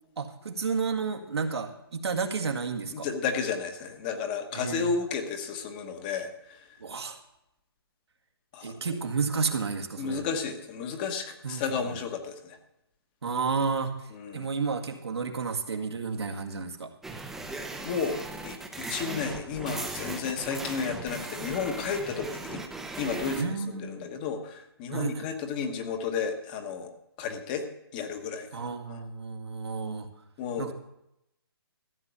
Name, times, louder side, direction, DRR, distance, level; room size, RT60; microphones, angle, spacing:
voice 1, 0.2-3.1 4.5-4.9 6.8-7.2 8.6-10.2 11.4-12.0 13.2-13.9 14.3-16.9 23.3-24.1 24.9-25.3 28.5-30.1 30.6-30.7, right 5 dB, 80° right, 3 dB, 2.0 m, -31 dB
voice 2, 2.9-6.6 8.5-8.8 10.0-12.6 14.1-14.5 17.8-22.6 23.0-26.9 27.2-27.6 27.9-29.0 30.4-30.7, left 6 dB, 20° left, 6 dB, 1.1 m, -32 dB
sound 1, 17.0-23.4, right 2 dB, ahead, 0.6 m, -38 dB
14.0 x 7.4 x 6.9 m, 0.83 s
hypercardioid pair, 165°, 13 cm